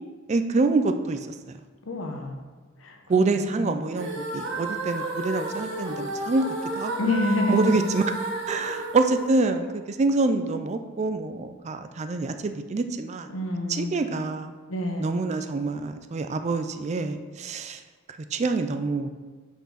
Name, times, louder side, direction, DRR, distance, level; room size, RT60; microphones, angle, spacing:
voice 1, 0.3-1.2 3.1-6.5 6.8-6.9 7.5-8.0 8.5-13.3 13.7-14.5 15.0-17.8 18.3-19.1, right 3 dB, 35° right, 8 dB, 0.4 m, -26 dB
voice 2, 1.8-2.4 2.8-3.8 7.0-7.8 13.3-14.0 14.7-15.1, left 2 dB, 75° left, 3 dB, 1.0 m, -28 dB
sound 1, 3.9-10.1, right 2 dB, 60° right, 1.1 m, -32 dB
5.7 x 4.5 x 5.7 m, 1.4 s
head